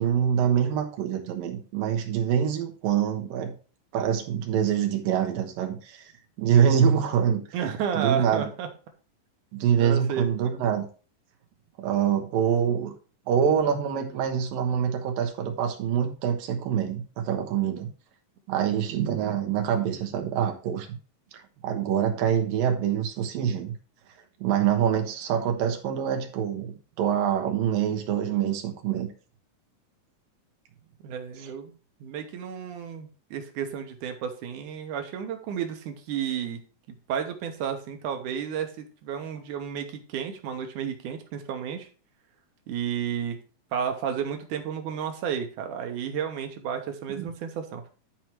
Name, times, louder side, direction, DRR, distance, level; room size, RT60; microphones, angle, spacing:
voice 1, 0.0-3.5 3.9-6.0 6.4-7.4 7.9-8.4 9.5-10.8 11.8-12.9 13.3-17.9 18.5-21.0 21.6-23.7 24.4-29.1 31.4-31.5 47.2-47.3, right 8 dB, 90° right, 4 dB, 2.9 m, -25 dB
voice 2, 7.5-8.7 9.8-10.3 31.0-31.7 32.0-36.6 37.1-41.9 42.7-43.4 43.7-47.9, right 8 dB, 70° right, 6 dB, 2.5 m, -32 dB
10.0 x 4.7 x 4.5 m, 0.37 s
omnidirectional pair, 3.9 m